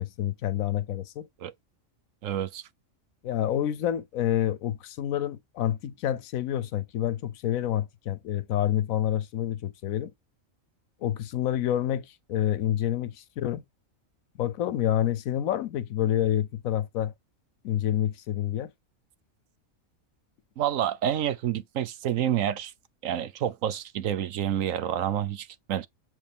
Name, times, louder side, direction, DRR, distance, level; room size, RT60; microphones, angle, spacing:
voice 1, 0.0-1.3 3.2-10.1 11.0-13.6 14.4-17.1 17.6-18.7, left 11 dB, 85° left, 1.1 m, -28 dB
voice 2, 2.2-2.6 20.6-22.7 23.0-25.9, right 10 dB, 75° right, 1.1 m, -28 dB
7.3 x 4.6 x 3.5 m
omnidirectional pair, 1.4 m